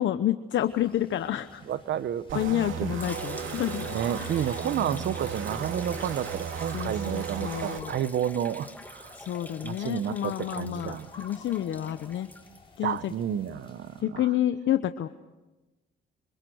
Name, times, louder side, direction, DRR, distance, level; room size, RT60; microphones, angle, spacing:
voice 1, 0.0-1.6 2.3-4.6 6.7-8.0 9.1-12.3 12.8-13.1 14.0-15.1, left 12 dB, 70° left, 10 dB, 1.0 m, -29 dB
sound 1, 0.6-14.0, left 3 dB, 25° left, 7.9 m, -53 dB
voice 2, 1.7-2.4 2.8-2.9 3.4-3.6 3.9-9.2 9.6-11.1 12.8-14.3, right 9 dB, 65° right, 15 dB, 1.1 m, -31 dB
sound 2, 2.3-7.8, right 7 dB, 80° right, 2.5 m, -35 dB
Liquid, 3.0-13.1, left 1 dB, 10° left, 2.6 m, -45 dB
27.0 x 27.0 x 6.4 m, 1.1 s
cardioid pair, 90°, 20 cm